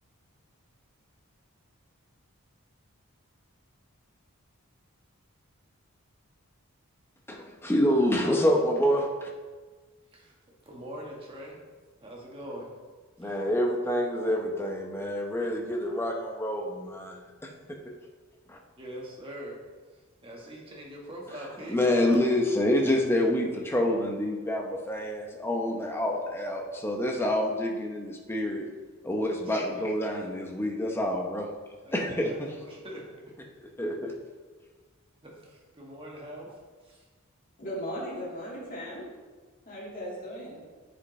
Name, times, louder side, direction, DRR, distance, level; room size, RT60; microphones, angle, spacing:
voice 1, 7.3-9.3 13.2-17.9 18.5-18.6 21.7-28.7 29.0-31.5 31.9-32.3 33.8-34.1, left 1 dB, 10° left, 1 dB, 0.8 m, -27 dB
voice 2, 10.6-11.6 12.0-12.7 13.2-13.4 18.8-19.6 19.9-21.8 29.2-29.8 31.8-33.4 35.2-37.1, equal, 25° right, -3 dB, 1.5 m, -43 dB
voice 3, 37.6-39.1 39.6-40.6, equal, 40° left, -5 dB, 2.0 m, -37 dB
9.7 x 5.2 x 3.2 m, 1.4 s
head